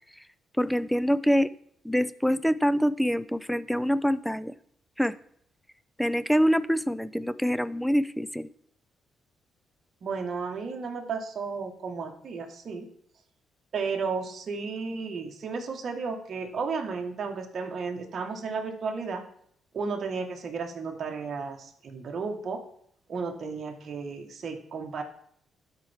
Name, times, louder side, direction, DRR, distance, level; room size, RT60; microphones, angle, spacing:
voice 1, 0.6-1.5 1.8-4.5 5.0-5.1 6.0-8.5, equal, ahead, 17 dB, 0.4 m, -25 dB
voice 2, 10.0-12.9 13.7-19.3 19.7-22.6 23.1-25.0, right 4 dB, 50° right, 2 dB, 1.3 m, -33 dB
12.0 x 4.5 x 3.4 m, 0.67 s
cardioid pair, 90°, 0 cm